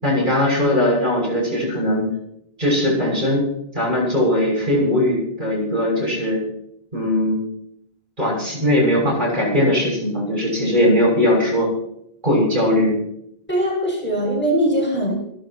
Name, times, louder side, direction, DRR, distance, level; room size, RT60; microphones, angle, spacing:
voice 1, 0.0-2.1 2.6-3.4 3.7-6.4 6.9-7.4 8.2-11.7 12.2-12.9, left 1 dB, 50° right, -2 dB, 6.8 m, -19 dB
voice 2, 13.5-15.1, equal, 10° left, -2 dB, 6.6 m, -21 dB
29.0 x 12.0 x 3.0 m, 0.75 s
omnidirectional pair, 1.0 m